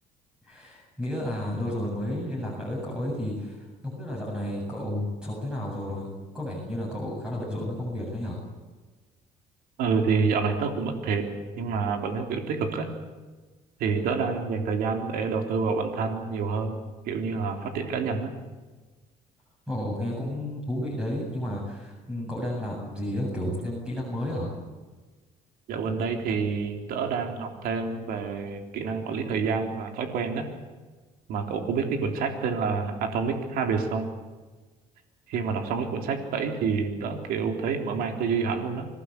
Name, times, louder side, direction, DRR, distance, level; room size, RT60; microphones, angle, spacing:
voice 1, 0.4-8.4 19.7-24.6, left 1 dB, 5° right, -2 dB, 7.9 m, -32 dB
voice 2, 9.8-11.3 11.6-12.9 13.8-16.8 17.0-18.3 25.7-30.5 31.3-34.1 35.3-38.9, right 5 dB, 80° right, 4 dB, 3.6 m, -28 dB
26.5 x 18.0 x 8.3 m, 1.3 s
cardioid pair, 110°, 15 cm